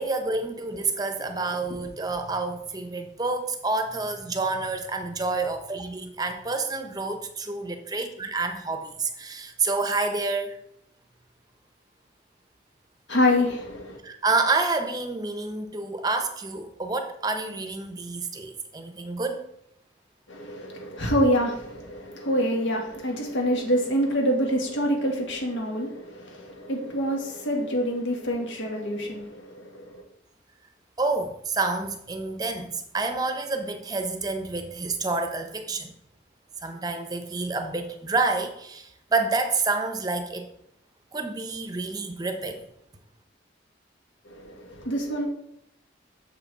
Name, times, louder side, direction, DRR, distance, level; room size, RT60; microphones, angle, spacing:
voice 1, 0.0-10.6 14.0-19.4 31.0-35.9 36.6-40.5 41.1-42.6, right 3 dB, 20° right, 0.7 m, -28 dB
voice 2, 13.1-14.0 20.3-30.0 44.2-45.3, equal, 90° left, 1.7 m, -26 dB
6.8 x 5.8 x 4.1 m
head